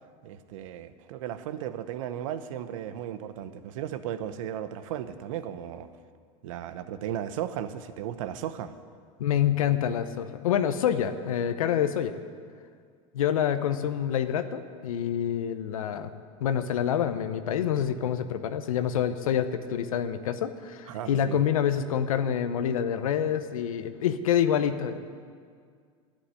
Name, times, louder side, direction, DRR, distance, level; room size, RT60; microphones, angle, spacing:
voice 1, 0.2-5.9 6.4-8.7 20.9-21.4 21.8-21.9, right 10 dB, 70° right, 12 dB, 0.9 m, -35 dB
voice 2, 9.2-12.1 13.1-16.1 16.4-25.0, left 9 dB, 85° left, 9 dB, 0.8 m, -27 dB
11.5 x 8.6 x 9.6 m, 2.1 s
hypercardioid pair, 100°, 17 cm